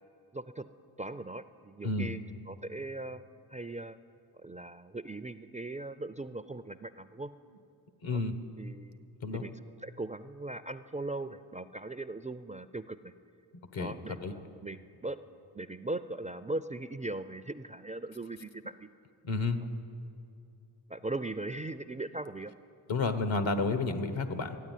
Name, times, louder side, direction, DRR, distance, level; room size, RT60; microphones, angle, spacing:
voice 1, 0.3-0.6 1.0-2.2 2.5-3.2 3.5-4.0 4.4-7.3 8.1-8.2 8.6-9.0 9.3-9.5 9.8-13.1 13.8-15.2 15.5-18.9 20.9-22.5, right 2 dB, 15° right, 12 dB, 0.4 m, -39 dB
voice 2, 8.0-8.4 9.2-9.4 13.7-14.3 19.2-19.6 22.9-24.6, left 3 dB, 75° left, 9 dB, 1.3 m, -31 dB
14.0 x 9.5 x 9.2 m, 2.6 s
cardioid pair, 50°, 47 cm